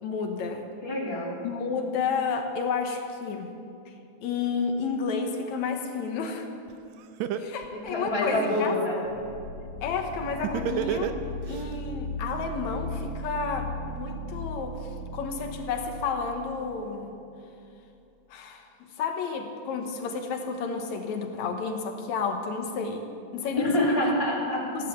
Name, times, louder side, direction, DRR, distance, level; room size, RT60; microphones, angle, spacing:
voice 1, 0.0-0.6 1.4-3.5 4.2-6.5 7.4-8.8 9.8-11.2 11.5-14.8 15.1-17.1 18.3-18.7 19.0-23.0 23.3-24.0 24.7-24.9, left 5 dB, 75° left, 4 dB, 2.4 m, -31 dB
voice 2, 0.8-1.3 7.9-8.9 23.6-24.6, left 1 dB, 10° left, -6 dB, 3.1 m, -26 dB
Laughter, 6.7-6.8 7.2-8.7 10.4-11.6, right 10 dB, 75° right, 1.9 m, -29 dB
sound 1, 9.1-16.8, equal, 90° left, 2.3 m, -37 dB
15.0 x 11.0 x 7.1 m, 2.6 s
omnidirectional pair, 3.4 m